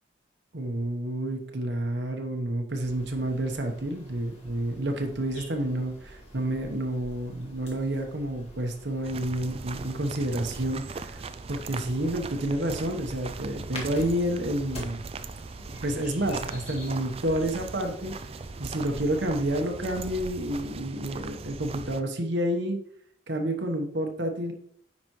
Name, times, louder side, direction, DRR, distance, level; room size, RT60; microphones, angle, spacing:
voice 1, 0.5-15.0 15.7-18.1 18.6-22.8 23.3-24.5, right 1 dB, 65° right, 3 dB, 1.1 m, -29 dB
sound 1, 2.8-19.7, left 1 dB, 30° left, 1.8 m, -47 dB
sound 2, 9.0-22.0, right 4 dB, 30° right, 0.3 m, -39 dB
9.8 x 5.1 x 3.1 m, 0.64 s
head